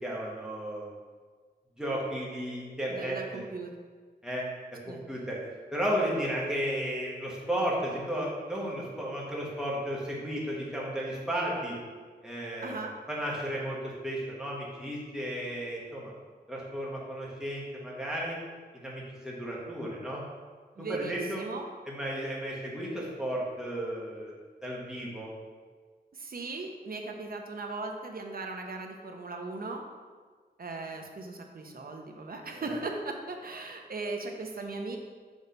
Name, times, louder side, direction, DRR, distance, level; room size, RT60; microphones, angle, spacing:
voice 1, 0.0-0.9 1.8-3.4 4.2-4.4 4.9-5.4 5.7-11.8 12.2-16.1 16.5-18.4 18.7-20.2 20.9-21.4 21.9-24.3 24.6-25.3 32.6-32.7, equal, 5° right, -5 dB, 1.7 m, -34 dB
voice 2, 2.9-3.7 4.9-5.0 12.6-12.9 20.8-21.7 26.1-29.8 30.6-35.0, right 3 dB, 60° right, 3 dB, 0.9 m, -38 dB
6.3 x 3.9 x 5.4 m, 1.5 s
wide cardioid pair, 100°, 17 cm